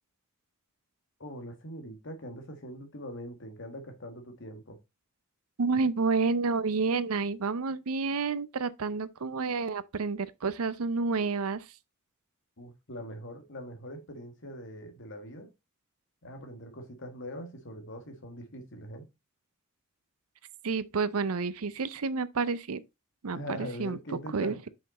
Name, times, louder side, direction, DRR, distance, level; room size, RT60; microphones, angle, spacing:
voice 1, 1.2-4.8 12.6-15.5 16.2-19.1 23.3-24.7, equal, 60° left, 1.8 m, -42 dB
voice 2, 5.6-11.6 20.6-22.8 23.2-23.4 23.8-24.0 24.3-24.7, right 4 dB, 85° right, 0.6 m, -29 dB
5.7 x 5.4 x 4.2 m
head